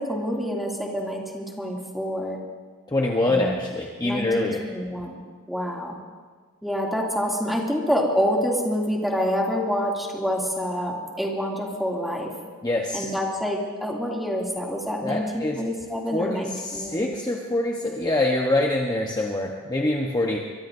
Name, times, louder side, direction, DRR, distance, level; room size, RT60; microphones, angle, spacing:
voice 1, 0.0-2.4 3.3-3.6 4.0-5.2 5.5-6.0 6.6-12.3 12.9-17.1, equal, ahead, -3 dB, 2.6 m, -27 dB
voice 2, 2.9-4.6 12.6-13.1 15.0-15.6 16.1-20.4, left 2 dB, 20° left, 0 dB, 1.0 m, -25 dB
23.5 x 23.0 x 2.6 m, 1.5 s
head